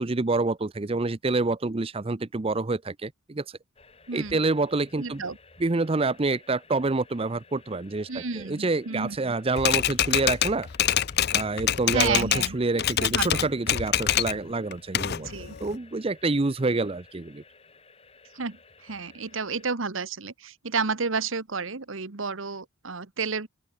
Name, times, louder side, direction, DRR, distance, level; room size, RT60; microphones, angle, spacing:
voice 1, 0.0-3.4 4.1-5.2 5.6-10.7 11.3-15.3 15.6-17.4, right 3 dB, 25° right, 0.6 m, -27 dB
sound 1, 3.8-19.7, left 3 dB, 30° left, 7.4 m, -55 dB
voice 2, 4.1-4.4 5.0-5.4 8.1-9.4 11.9-12.6 13.0-13.5 15.2-15.6 18.3-23.5, right 4 dB, 65° right, 1.3 m, -31 dB
Typewriter, 9.6-12.5 12.8-14.4 14.7-15.8, left 11 dB, 50° left, 0.6 m, -25 dB
open air
head